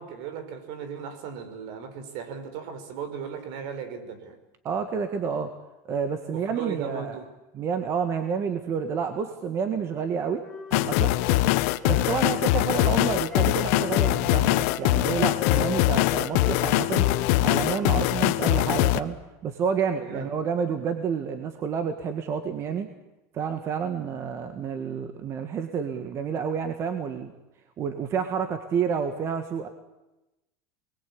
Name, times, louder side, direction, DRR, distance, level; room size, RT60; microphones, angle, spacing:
voice 1, 0.0-4.4 6.3-7.3 11.3-11.5 20.0-20.3, right 7 dB, 60° right, 9 dB, 4.9 m, -36 dB
voice 2, 4.6-5.5 5.9-7.2 7.5-10.4 10.7-11.1 11.9-17.1 17.4-19.2 19.4-22.9 23.3-27.3 27.8-29.7, right 6 dB, 35° right, 7 dB, 1.9 m, -29 dB
Wind instrument woodwind instrument, 9.9-13.5 13.9-18.0, left 5 dB, 10° left, 4.1 m, -39 dB
sound 1, 10.7-19.0, left 18 dB, 65° left, 1.1 m, -22 dB
27.5 x 21.5 x 8.8 m, 0.97 s
supercardioid pair, 145°, 9 cm